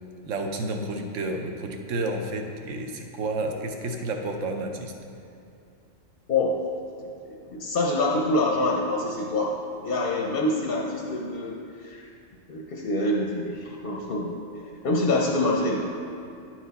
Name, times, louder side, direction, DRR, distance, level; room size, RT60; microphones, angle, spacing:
voice 1, 0.2-4.9, right 2 dB, 70° right, 4 dB, 1.0 m, -30 dB
voice 2, 6.3-6.6 7.0-12.1 12.5-15.8, left 2 dB, 55° left, 0 dB, 0.7 m, -26 dB
9.8 x 4.5 x 4.0 m, 2.5 s
omnidirectional pair, 1.4 m